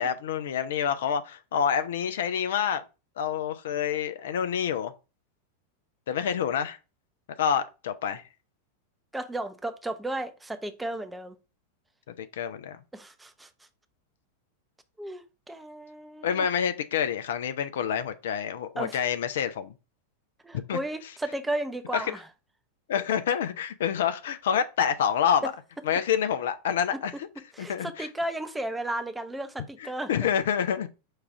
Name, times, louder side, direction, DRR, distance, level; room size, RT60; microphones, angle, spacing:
voice 1, 0.0-2.8 3.2-4.9 6.1-6.8 7.4-8.2 12.2-12.8 16.2-19.7 20.5-20.8 21.9-22.0 22.9-25.5 25.9-27.3 27.6-28.1 29.8-30.9, left 8 dB, 60° left, 0.4 m, -27 dB
voice 2, 9.1-11.3 12.9-13.5 15.0-16.5 18.8-19.0 20.4-22.3 27.5-30.1, right 1 dB, 5° right, 0.5 m, -34 dB
4.7 x 2.4 x 4.7 m
figure-of-eight pair, 90°, 0 cm